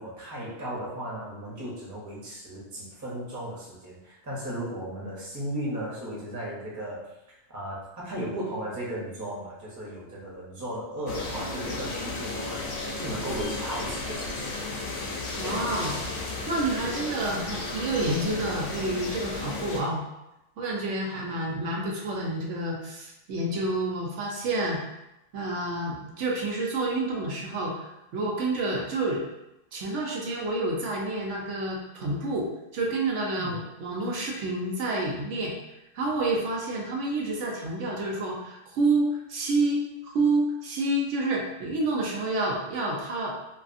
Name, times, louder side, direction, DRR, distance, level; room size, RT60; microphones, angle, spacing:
voice 1, 0.0-7.1 7.5-14.5 33.4-33.5, right 1 dB, 20° right, -5 dB, 0.6 m, -35 dB
sound 1, 11.1-19.8, left 3 dB, 85° left, 0.9 m, -34 dB
voice 2, 15.4-16.0 16.5-20.0 20.6-24.8 25.3-29.2 29.7-35.5 35.9-43.3, right 2 dB, 85° right, -1 dB, 1.0 m, -29 dB
2.7 x 2.4 x 2.5 m, 0.91 s
omnidirectional pair, 1.2 m